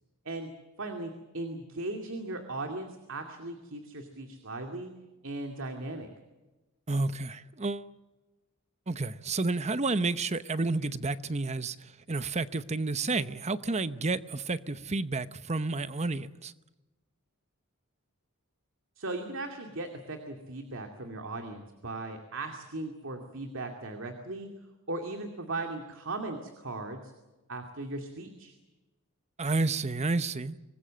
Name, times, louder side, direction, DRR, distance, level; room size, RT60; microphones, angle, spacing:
voice 1, 0.8-4.9 5.2-6.1 19.0-24.5 24.9-27.1 27.5-28.6, right 2 dB, 60° right, 2.5 m, -38 dB
voice 2, 6.9-7.9 8.9-11.8 12.1-16.5 29.4-30.6, right 3 dB, 30° right, 0.9 m, -30 dB
25.5 x 20.5 x 7.7 m
head